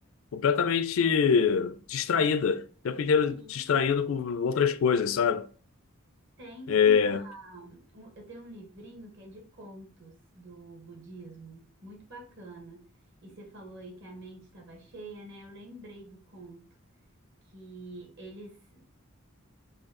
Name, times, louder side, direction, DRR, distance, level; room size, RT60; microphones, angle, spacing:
voice 1, 0.3-5.5 6.7-7.2, left 6 dB, 70° left, 0.4 m, -25 dB
voice 2, 3.3-3.6 6.4-12.9 13.2-16.7 17.5-18.9, right 2 dB, 55° right, 1.4 m, -47 dB
4.2 x 2.7 x 3.8 m
head